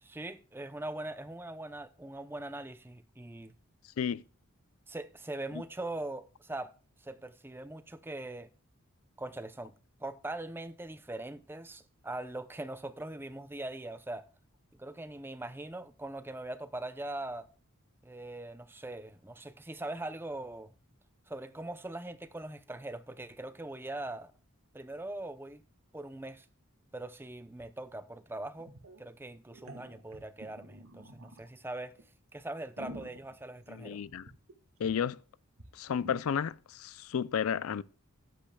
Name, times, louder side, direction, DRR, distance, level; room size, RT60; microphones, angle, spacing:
voice 1, 0.0-3.5 4.9-6.7 7.0-8.5 9.2-9.7 10.0-14.3 14.7-17.5 18.0-20.7 21.3-24.3 24.7-25.6 25.9-26.5 26.9-28.7 29.0-32.0 32.3-34.0, right 2 dB, 10° right, 0.6 m, -41 dB
sound 1, 27.6-27.7 27.9-28.0 28.6-29.0 29.5-31.5 32.0-32.1 32.5-34.5 34.8-34.9 35.2-35.3 35.6-35.7 36.0-36.2, right 1 dB, 85° right, 1.8 m, -48 dB
voice 2, 33.7-34.3 34.8-35.2 35.7-37.8, left 7 dB, 75° left, 0.4 m, -32 dB
13.5 x 10.5 x 2.2 m
head